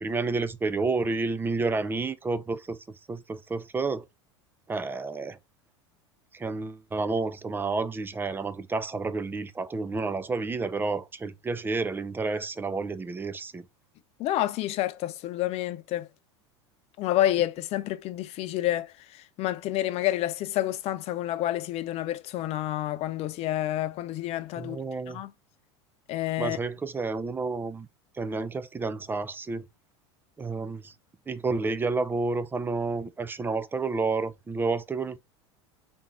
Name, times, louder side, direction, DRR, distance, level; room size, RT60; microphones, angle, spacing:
voice 1, 0.0-2.8 3.1-4.0 4.7-5.4 6.3-13.6 24.6-25.2 26.4-27.9 28.2-29.7 30.4-30.9 31.3-35.2, right 3 dB, 15° right, 0.4 m, -30 dB
voice 2, 14.2-16.1 17.0-18.9 19.4-24.8 25.1-25.3 26.1-26.6, left 14 dB, 45° left, 0.5 m, -29 dB
3.5 x 2.7 x 3.3 m
hypercardioid pair, 95°, 15 cm